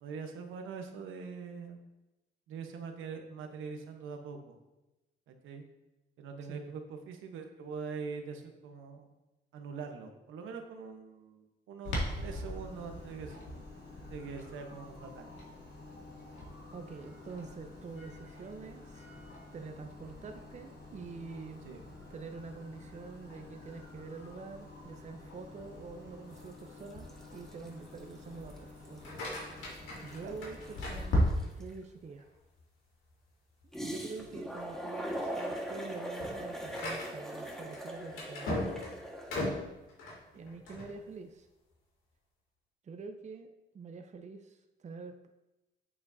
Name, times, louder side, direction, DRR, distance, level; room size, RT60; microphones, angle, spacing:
voice 1, 0.0-1.8 2.5-4.6 5.3-5.6 6.2-9.1 9.5-13.4 14.1-15.3 21.6-21.8 30.2-30.4, right 5 dB, 85° right, 4 dB, 1.1 m, -43 dB
Clock, 11.8-31.2, equal, 65° left, 2.4 m, -41 dB
voice 2, 16.7-19.1 19.5-21.7 22.1-29.2 30.0-32.3 33.6-39.0 40.3-41.5 42.8-45.3, right 4 dB, 35° right, 6 dB, 0.6 m, -46 dB
sound 1, 26.4-26.6 26.9-28.1 28.5-28.6 28.8-31.7 33.7-39.4, right 1 dB, ahead, 1.5 m, -40 dB
sound 2, 28.9-31.7 32.2-32.6 33.1-33.2 33.6-33.8 34.4-34.7 35.1-40.9, left 1 dB, 90° left, 2.6 m, -40 dB
8.5 x 7.0 x 2.7 m, 1.0 s
cardioid pair, 90°, 20 cm